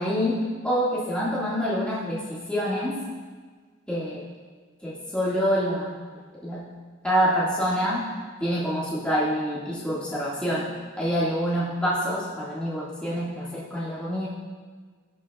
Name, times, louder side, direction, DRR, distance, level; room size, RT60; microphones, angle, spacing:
voice 1, 0.0-3.0 3.9-4.2 4.8-6.0 6.4-6.7 7.0-8.0 8.4-14.3, equal, 5° left, -9 dB, 1.9 m, -26 dB
16.5 x 6.3 x 2.4 m, 1.5 s
head